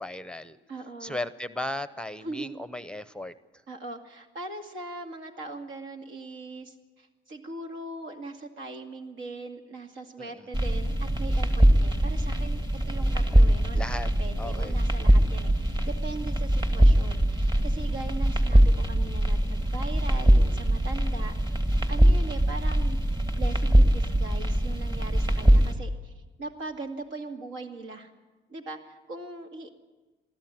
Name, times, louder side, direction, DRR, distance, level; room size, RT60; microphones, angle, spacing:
voice 1, 0.0-0.6 1.0-3.3 10.2-10.5 12.8-13.5 13.7-14.1 14.4-14.8 25.3-25.8, left 1 dB, 5° left, 13 dB, 0.7 m, -37 dB
voice 2, 0.7-1.2 2.2-2.6 3.7-13.9 14.2-28.1 28.5-29.7, right 2 dB, 75° right, 4 dB, 2.3 m, -40 dB
sound 1, 10.5-25.7, right 1 dB, 20° right, 1.9 m, -22 dB
21.5 x 13.5 x 9.3 m, 1.2 s
cardioid pair, 90°, 20 cm